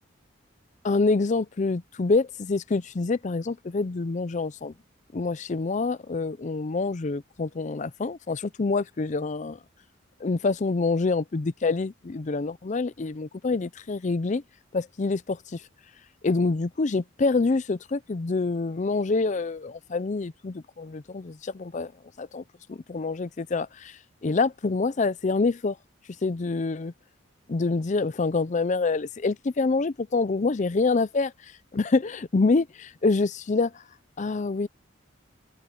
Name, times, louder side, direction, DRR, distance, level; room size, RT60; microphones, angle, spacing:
voice 1, 0.8-4.7 5.1-9.6 10.2-14.4 14.7-15.6 16.2-21.9 22.2-22.4 22.7-25.8 26.2-26.9 27.5-31.3 31.7-33.7 34.2-34.7, left 3 dB, 40° left, 0.5 m, -26 dB
head